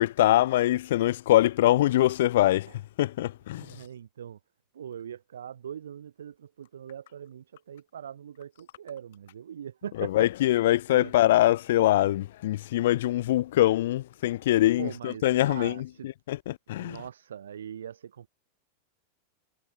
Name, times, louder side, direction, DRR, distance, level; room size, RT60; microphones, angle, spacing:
voice 1, 0.0-2.7 3.0-3.8 10.0-17.0, left 14 dB, 55° left, 0.5 m, -23 dB
voice 2, 3.6-4.4 4.7-10.3 10.9-11.1 14.8-16.1 16.7-18.3, right 9 dB, 65° right, 2.1 m, -41 dB
figure-of-eight pair, 90°, 0 cm